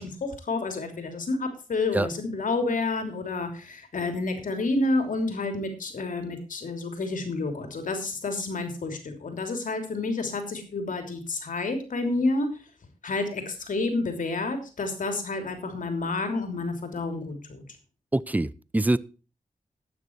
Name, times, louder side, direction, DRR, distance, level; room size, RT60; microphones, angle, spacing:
voice 1, 0.0-12.5 13.0-17.6, left 3 dB, 80° left, 3.1 m, -29 dB
voice 2, 18.1-19.0, right 2 dB, 10° right, 0.6 m, -24 dB
12.5 x 9.6 x 4.6 m
cardioid pair, 60°, 13 cm